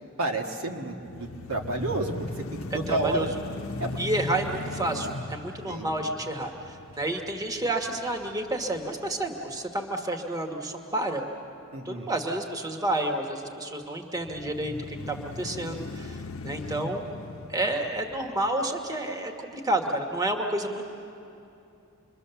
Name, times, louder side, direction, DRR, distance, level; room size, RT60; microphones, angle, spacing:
voice 1, 0.2-3.3 3.8-4.0 5.7-5.9 11.7-12.1, right 2 dB, 80° right, 1 dB, 1.9 m, -31 dB
sound 1, 0.9-9.1 9.5-9.6 14.2-18.7, left 2 dB, 70° left, 0.8 m, -39 dB
voice 2, 2.7-3.3 4.0-11.2 11.8-16.2 16.4-17.0 17.5-20.8, right 1 dB, 15° right, 3 dB, 1.4 m, -30 dB
27.5 x 22.5 x 7.0 m, 2.7 s
head